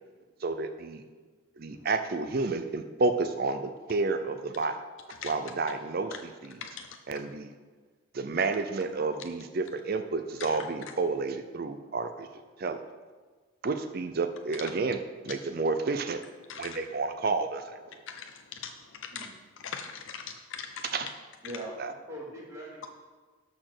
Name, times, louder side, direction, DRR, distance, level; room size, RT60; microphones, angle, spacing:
voice 1, 0.4-1.0 1.6-4.8 5.2-6.6 7.1-7.5 8.1-12.3 12.6-12.8 13.6-15.0 15.2-16.2 16.6-18.0 20.9-21.1 21.8-21.9, right 3 dB, 45° right, 8 dB, 0.5 m, -30 dB
voice 2, 19.6-20.7, left 7 dB, 60° left, 5 dB, 0.5 m, -40 dB
voice 3, 21.4-22.9, right 1 dB, 15° right, -5 dB, 2.3 m, -41 dB
12.0 x 4.4 x 6.6 m, 1.4 s
head